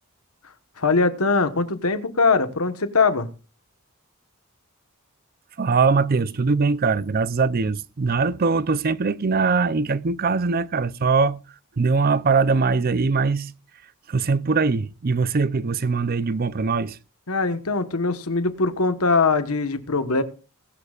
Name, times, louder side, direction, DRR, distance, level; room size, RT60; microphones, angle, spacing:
voice 1, 0.8-3.3 17.3-20.2, left 4 dB, 75° left, 1.3 m, -21 dB
voice 2, 5.6-11.4 11.8-13.5 14.1-17.0, right 4 dB, 40° right, 0.5 m, -21 dB
19.5 x 11.5 x 2.4 m
head